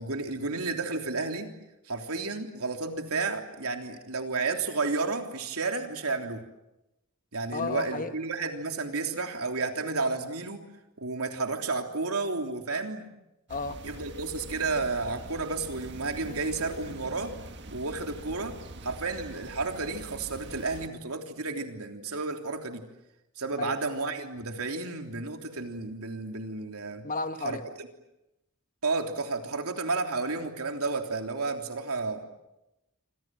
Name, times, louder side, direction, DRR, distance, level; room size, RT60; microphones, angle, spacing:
voice 1, 0.0-1.5 1.9-6.4 7.3-10.6 11.0-13.1 13.8-17.4 17.7-18.6 18.8-22.8 23.4-27.0 27.4-27.9 28.8-32.2, right 3 dB, 80° right, 4 dB, 3.4 m, -32 dB
voice 2, 7.5-8.1 13.5-13.8 23.6-23.8 27.0-27.6, left 3 dB, 40° left, 9 dB, 1.5 m, -33 dB
sound 1, 13.5-20.9, right 2 dB, 55° right, 1.7 m, -44 dB
27.5 x 26.0 x 7.7 m, 0.94 s
head